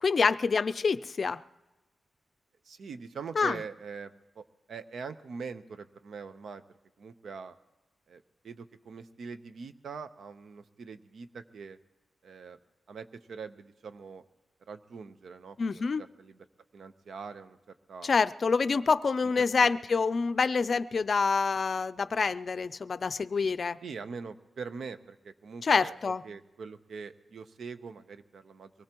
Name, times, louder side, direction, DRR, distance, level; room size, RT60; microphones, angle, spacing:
voice 1, 0.0-1.4 3.4-3.6 15.6-16.0 18.0-23.8 25.6-26.2, left 4 dB, 45° left, 14 dB, 0.4 m, -27 dB
voice 2, 2.6-6.6 7.0-7.6 8.1-11.8 12.2-12.6 12.9-14.2 14.7-16.5 16.7-18.1 18.7-18.9 19.4-19.5 23.8-25.9 26.2-28.7, right 5 dB, 75° right, 10 dB, 0.8 m, -43 dB
23.5 x 19.0 x 3.0 m, 1.1 s
wide cardioid pair, 150°, 0 cm